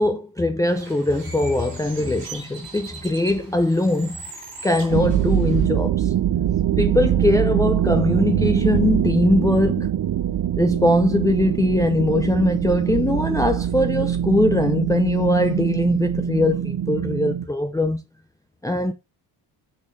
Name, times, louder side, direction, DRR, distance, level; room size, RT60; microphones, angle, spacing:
voice 1, 0.0-4.2 4.6-6.1 6.8-9.9 10.6-18.0 18.6-18.9, left 2 dB, 10° left, 0.6 m, -21 dB
Bird, 0.7-5.7, right 4 dB, 75° right, 3.0 m, -40 dB
sound 1, 4.9-17.5, right 10 dB, 55° right, 0.7 m, -23 dB
6.3 x 3.8 x 4.1 m
cardioid pair, 85°, 42 cm